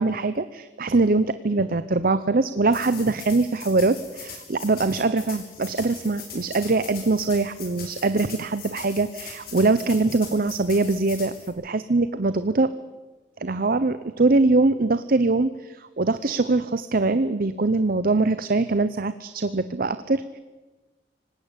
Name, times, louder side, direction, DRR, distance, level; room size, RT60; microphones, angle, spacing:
voice 1, 0.0-12.7 13.4-20.4, right 3 dB, 55° right, 13 dB, 0.8 m, -23 dB
sound 1, 2.7-11.5, left 6 dB, 60° left, 6.8 m, -41 dB
25.5 x 19.0 x 8.3 m, 1.2 s
head